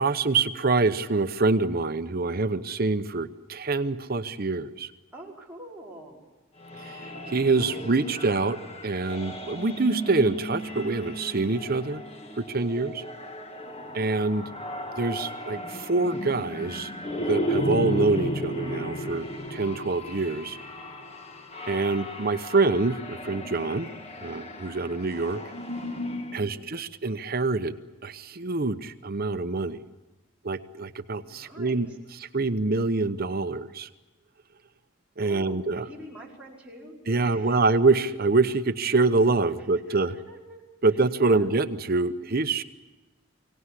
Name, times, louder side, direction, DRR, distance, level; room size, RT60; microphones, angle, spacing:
voice 1, 0.0-4.9 6.8-8.6 8.8-12.0 12.4-13.0 13.9-14.5 15.0-16.9 17.3-20.6 21.7-23.9 24.2-25.4 26.3-27.8 28.0-29.8 30.4-31.9 32.2-33.9 35.2-35.8 37.1-40.2 40.8-42.6, right 3 dB, 50° right, 11 dB, 0.9 m, -25 dB
voice 2, 5.1-6.2 26.3-26.7 31.2-32.0 35.2-37.0 37.2-37.8 39.9-40.6 40.9-41.5, right 1 dB, 5° right, -4 dB, 5.1 m, -46 dB
sound 1, 6.6-26.4, equal, 30° left, 1.6 m, -35 dB
24.0 x 18.0 x 9.9 m, 1.1 s
head